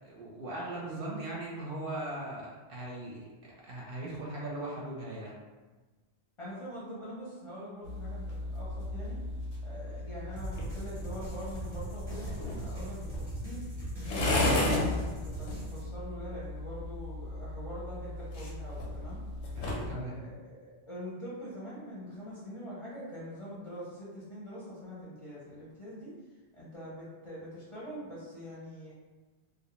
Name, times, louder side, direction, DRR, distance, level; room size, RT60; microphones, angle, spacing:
voice 1, 0.0-3.2 3.6-5.3 19.6-20.2, right 2 dB, 60° right, -4 dB, 0.7 m, -39 dB
voice 2, 6.4-9.2 9.6-13.6 14.0-19.2 20.1-26.1 26.5-28.9, equal, 35° left, -9 dB, 0.6 m, -44 dB
sound 1, 7.8-19.9, left 2 dB, 85° left, 0.9 m, -35 dB
sound 2, 10.4-15.8, right 3 dB, 25° right, 0.7 m, -42 dB
2.2 x 2.0 x 2.9 m, 1.3 s
omnidirectional pair, 1.1 m